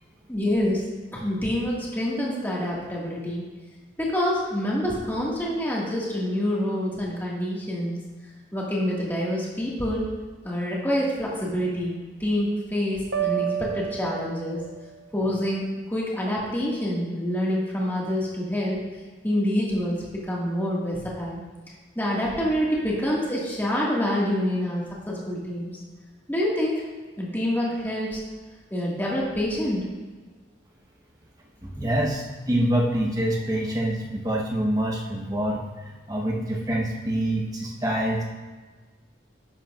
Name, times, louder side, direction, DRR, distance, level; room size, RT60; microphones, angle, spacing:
voice 1, 0.3-0.8 1.1-3.5 4.0-8.0 8.5-10.1 10.4-14.6 15.1-18.8 19.2-21.4 22.0-25.7 26.3-26.8 27.2-28.2 28.7-29.9, equal, 10° left, -5 dB, 1.8 m, -26 dB
sound 1, 13.1-15.0, right 9 dB, 75° right, 0.6 m, -30 dB
voice 2, 31.6-38.3, right 1 dB, 20° right, -1 dB, 1.1 m, -26 dB
11.5 x 7.6 x 2.5 m, 1.4 s
head